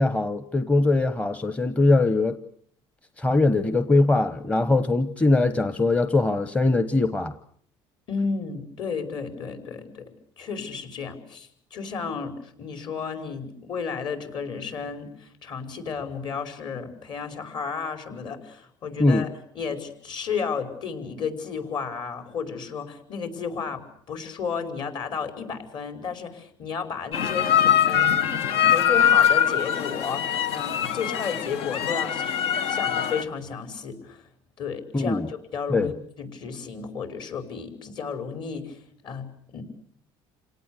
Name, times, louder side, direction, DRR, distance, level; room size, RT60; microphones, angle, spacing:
voice 1, 0.0-2.4 3.2-7.3 19.0-19.2 34.9-35.3 35.7-35.9, left 2 dB, 10° left, 10 dB, 1.1 m, -21 dB
voice 2, 8.1-10.1 10.4-19.3 19.5-28.3 28.6-32.4 32.6-34.3 34.6-39.6, left 6 dB, 50° left, 8 dB, 5.7 m, -33 dB
sound 1, 27.1-33.2, left 9 dB, 75° left, 1.7 m, -22 dB
28.5 x 18.0 x 8.3 m, 0.64 s
cardioid pair, 135°, 10 cm